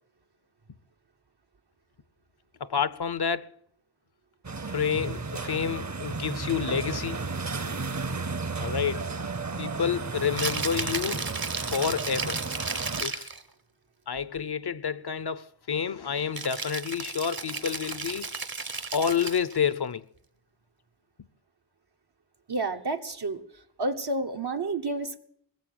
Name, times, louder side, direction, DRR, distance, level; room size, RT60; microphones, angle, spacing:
voice 1, 2.6-3.5 4.7-7.3 8.6-9.0 9.6-11.2 11.7-12.4 13.0-13.3 14.1-18.3 18.9-20.0, left 7 dB, 80° left, 0.7 m, -29 dB
sound 1, 4.4-13.0, right 4 dB, 45° right, 0.7 m, -33 dB
Rattle (instrument), 10.2-13.4 16.3-19.6, right 4 dB, 65° right, 1.1 m, -34 dB
voice 2, 22.5-23.4 23.8-25.2, right 2 dB, 90° right, 1.2 m, -30 dB
20.5 x 6.9 x 9.0 m
wide cardioid pair, 40°, 38 cm